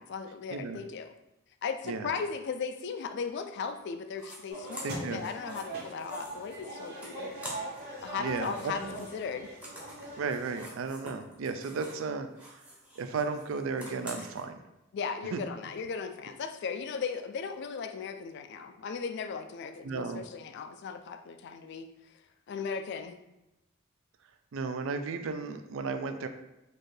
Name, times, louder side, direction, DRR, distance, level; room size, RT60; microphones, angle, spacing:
voice 1, 0.1-1.1 1.6-7.4 8.0-9.5 14.9-21.9 22.5-23.2, left 5 dB, 50° left, 8 dB, 0.3 m, -37 dB
sound 1, 4.1-4.4 4.7-7.9 8.2-12.1 12.3-14.4, equal, 5° right, 0.8 m, -47 dB
sound 2, 4.5-10.7, right 1 dB, 45° right, 1.3 m, -42 dB
voice 2, 4.8-5.3 8.2-9.0 10.2-12.5 13.0-14.6 15.3-15.4 19.8-20.2 24.5-26.3, right 4 dB, 65° right, 8 dB, 0.4 m, -34 dB
4.2 x 2.6 x 3.3 m, 0.93 s
head